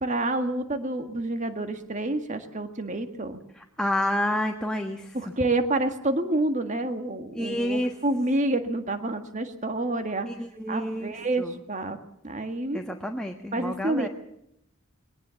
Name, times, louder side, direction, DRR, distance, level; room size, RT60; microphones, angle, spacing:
voice 1, 0.0-3.4 5.1-10.3 10.7-12.0 12.2-12.8 13.5-14.1, right 2 dB, 35° right, 8 dB, 1.8 m, -28 dB
voice 2, 3.5-5.3 7.3-7.9 10.3-11.5 12.7-14.1, left 1 dB, 5° left, 3 dB, 1.2 m, -29 dB
22.0 x 18.5 x 7.1 m, 0.77 s
head